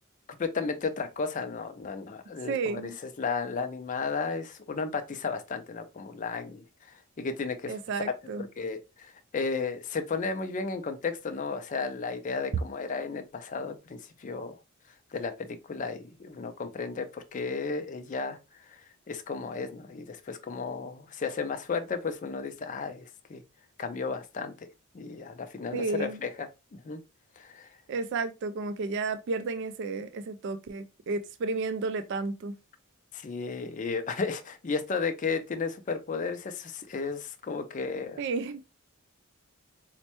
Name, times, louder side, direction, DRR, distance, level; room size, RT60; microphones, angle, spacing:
voice 1, 0.3-7.8 8.4-14.5 15.1-23.4 23.8-24.7 24.9-27.0 27.4-27.7 33.1-38.2, left 4 dB, 35° left, 0.4 m, -34 dB
voice 2, 2.5-3.0 7.7-8.4 25.7-26.2 27.9-32.5 38.2-38.6, right 3 dB, 60° right, 0.3 m, -32 dB
4.2 x 2.1 x 2.8 m
head